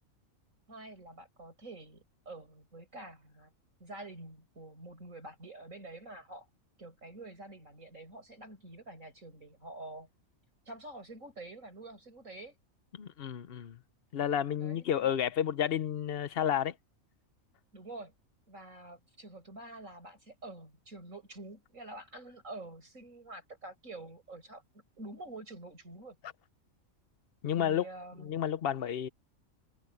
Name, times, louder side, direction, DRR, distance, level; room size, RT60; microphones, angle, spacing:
voice 1, 0.7-3.5 3.8-6.5 6.8-10.1 10.7-12.5 14.6-15.2 17.7-18.1 18.5-26.2 27.6-28.4, right 2 dB, 70° right, 7.7 m, -47 dB
voice 2, 12.9-13.8 14.1-16.7 27.4-27.9 28.2-29.1, left 9 dB, 50° left, 1.0 m, -31 dB
omnidirectional pair, 1.4 m